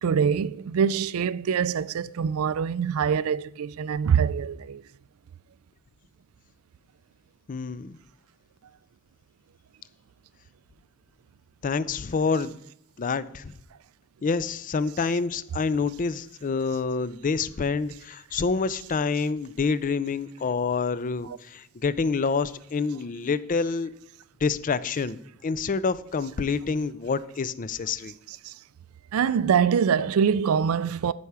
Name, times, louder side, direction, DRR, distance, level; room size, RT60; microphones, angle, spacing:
voice 1, 0.0-4.8 21.3-21.4 28.4-28.5 29.1-31.1, right 7 dB, 70° right, 0.4 m, -24 dB
voice 2, 7.5-8.0 11.6-12.6 13.0-13.5 14.2-23.9 24.4-28.1, left 4 dB, 35° left, 0.4 m, -27 dB
13.5 x 5.8 x 4.8 m
head